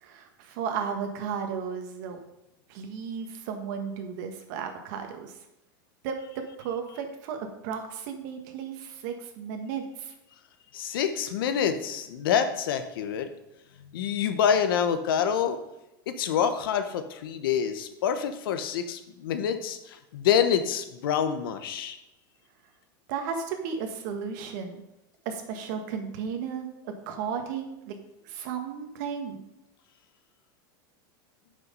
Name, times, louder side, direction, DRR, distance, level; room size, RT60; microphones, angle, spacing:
voice 1, 0.0-2.2 2.7-5.3 6.0-10.1 23.1-24.8 25.2-28.0 28.2-29.4, right 6 dB, 60° right, 5 dB, 1.6 m, -34 dB
voice 2, 10.7-13.3 13.9-15.6 16.1-22.0, left 8 dB, 85° left, 9 dB, 1.1 m, -27 dB
8.1 x 5.9 x 5.4 m, 0.92 s
supercardioid pair, 150°, 11 cm